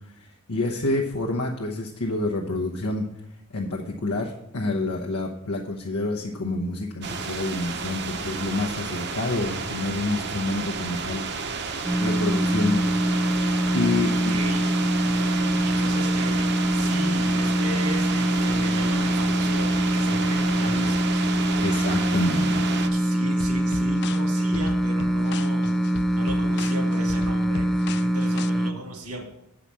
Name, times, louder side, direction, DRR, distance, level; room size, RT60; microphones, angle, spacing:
voice 1, 0.2-3.1 3.5-11.2 12.0-12.8 13.7-14.3 15.7-15.8 21.6-22.6, left 2 dB, 85° left, 0 dB, 1.0 m, -28 dB
sound 1, 7.0-22.9, right 5 dB, 50° right, 0.8 m, -31 dB
sound 2, 11.8-28.7, right 1 dB, ahead, 0.5 m, -24 dB
voice 2, 14.0-14.6 15.6-21.3 22.9-29.2, equal, 80° right, 2 dB, 2.0 m, -36 dB
sound 3, 23.4-28.5, left 6 dB, 50° left, 0.4 m, -37 dB
8.3 x 4.9 x 7.4 m, 0.82 s
head